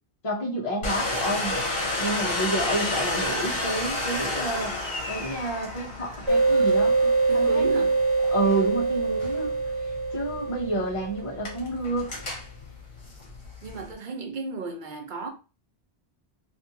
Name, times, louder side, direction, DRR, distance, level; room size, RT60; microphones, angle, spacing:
voice 1, 0.2-1.6 2.0-4.8 5.1-7.6 8.3-9.5 10.1-12.1, right 1 dB, 30° left, 1.0 m, -29 dB
Domestic sounds home sounds, 0.8-13.9, left 2 dB, 65° left, 1.3 m, -32 dB
sound 1, 6.3-11.6, right 3 dB, 30° right, 1.2 m, -24 dB
voice 2, 7.3-8.0 13.6-15.3, right 4 dB, 55° right, 0.7 m, -33 dB
3.3 x 2.7 x 2.8 m
omnidirectional pair, 1.1 m